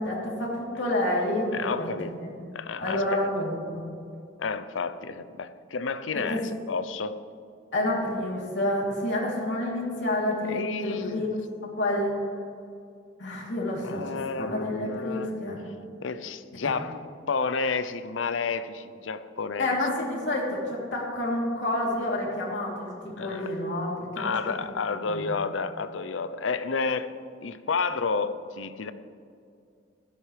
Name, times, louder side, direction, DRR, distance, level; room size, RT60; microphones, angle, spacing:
voice 1, 0.0-2.5 2.8-3.8 6.1-6.4 7.7-11.3 11.8-12.1 13.2-15.6 16.6-16.7 19.6-24.3 24.9-25.6, left 1 dB, 65° left, -4 dB, 3.2 m, -29 dB
voice 2, 1.5-2.2 2.5-3.3 4.4-7.2 10.5-11.3 13.8-15.3 16.0-17.0 17.3-19.8 23.2-23.5 24.2-27.1 27.4-28.9, left 4 dB, 90° left, 13 dB, 0.6 m, -31 dB
16.5 x 13.5 x 3.3 m, 2.4 s
head